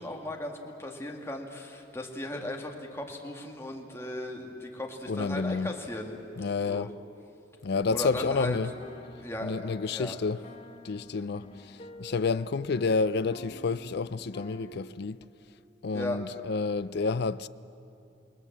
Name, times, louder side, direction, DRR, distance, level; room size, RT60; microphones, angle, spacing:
voice 1, 0.0-6.1 6.7-6.9 7.9-8.6 9.2-9.5 9.9-10.2 15.9-16.2, left 1 dB, 15° left, 2.2 m, -36 dB
voice 2, 5.1-5.7 6.4-6.9 7.6-8.7 9.4-10.4 10.8-11.5 12.0-15.2 15.8-17.5, left 4 dB, 60° left, 0.5 m, -29 dB
sound 1, 7.9-15.2, left 1 dB, 35° left, 1.1 m, -48 dB
28.0 x 19.5 x 7.4 m
head